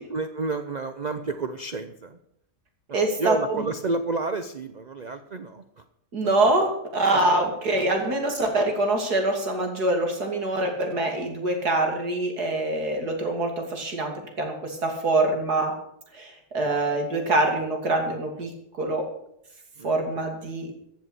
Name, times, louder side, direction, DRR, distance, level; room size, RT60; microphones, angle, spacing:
voice 1, 0.1-2.2 2.9-5.8 7.1-7.2 16.6-17.0 19.8-20.3, right 3 dB, 40° right, 9 dB, 0.6 m, -31 dB
voice 2, 2.9-3.6 6.1-15.7 16.1-18.5 18.8-19.1 19.8-20.7, right 2 dB, 75° right, 3 dB, 3.3 m, -25 dB
15.0 x 7.5 x 8.3 m, 0.75 s
omnidirectional pair, 1.7 m